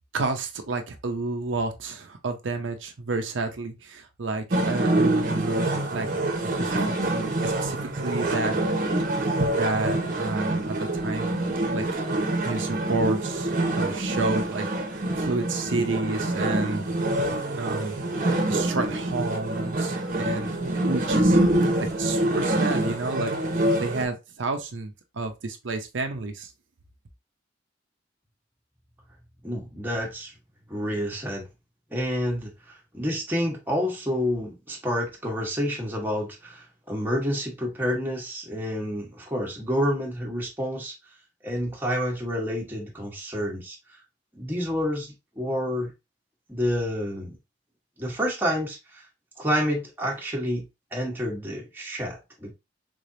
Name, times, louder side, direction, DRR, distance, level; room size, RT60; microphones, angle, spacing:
voice 1, 0.1-6.1 6.4-7.8 8.0-8.6 9.2-11.3 11.7-11.8 12.4-14.7 15.2-16.8 17.5-21.4 21.8-23.3 23.8-26.5, right 3 dB, 90° right, 0.6 m, -30 dB
sound 1, 4.5-24.1, right 1 dB, 45° right, 0.9 m, -26 dB
voice 2, 29.4-30.3 30.7-31.4 31.9-40.9 41.4-43.8 44.3-45.9 46.5-47.3 48.0-49.0 49.4-50.6 50.9-52.5, equal, 10° right, 1.1 m, -29 dB
3.7 x 3.3 x 2.6 m
head